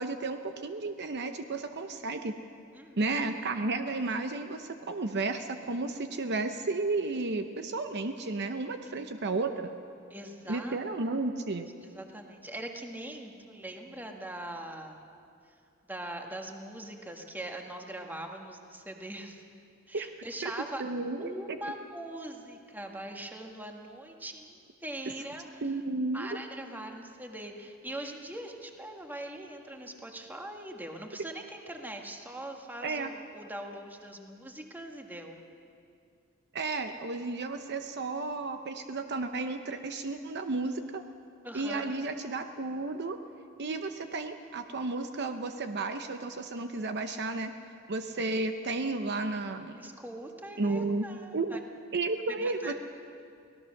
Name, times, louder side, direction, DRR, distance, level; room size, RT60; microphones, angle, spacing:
voice 1, 0.0-2.3 3.0-9.7 10.5-11.7 19.9-20.1 20.4-20.5 20.8-21.3 25.6-26.3 32.8-33.1 36.5-41.0 41.5-43.2 43.6-47.5 47.9-49.9 50.6-51.0 51.3-51.6 51.9-52.7, right 3 dB, 50° right, 7 dB, 0.8 m, -33 dB
voice 2, 2.7-3.2 8.9-9.0 10.1-10.8 11.0-11.2 11.8-15.0 15.9-19.4 19.9-20.8 21.2-25.7 26.1-35.4 41.4-41.9 49.8-51.6 52.4-52.7, right 1 dB, 10° right, 2 dB, 1.6 m, -42 dB
24.5 x 18.0 x 6.5 m, 2.4 s
head